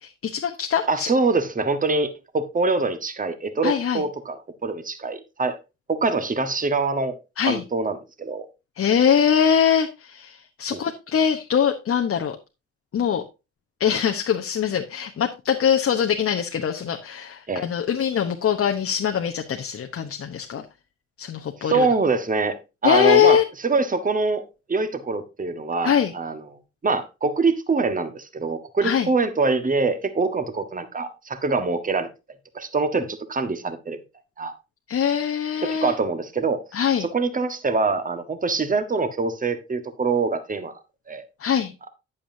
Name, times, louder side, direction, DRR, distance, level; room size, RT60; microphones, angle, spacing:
voice 1, 0.0-1.1 3.6-4.0 7.4-7.6 8.8-12.4 12.9-13.2 13.8-20.6 21.2-21.9 22.8-23.4 25.8-26.1 28.8-29.1 34.9-35.9 36.7-37.1 41.4-41.7, left 8 dB, 40° left, 1.1 m, -22 dB
voice 2, 0.9-2.1 2.3-5.6 5.9-7.2 7.5-8.4 10.7-10.8 17.5-17.7 21.6-22.6 22.8-26.4 26.8-32.1 32.5-34.0 34.4-34.5 35.6-36.6 37.0-40.7 41.1-41.2, right 4 dB, 25° right, 1.5 m, -24 dB
10.0 x 8.8 x 2.7 m
hypercardioid pair, 45°, 33 cm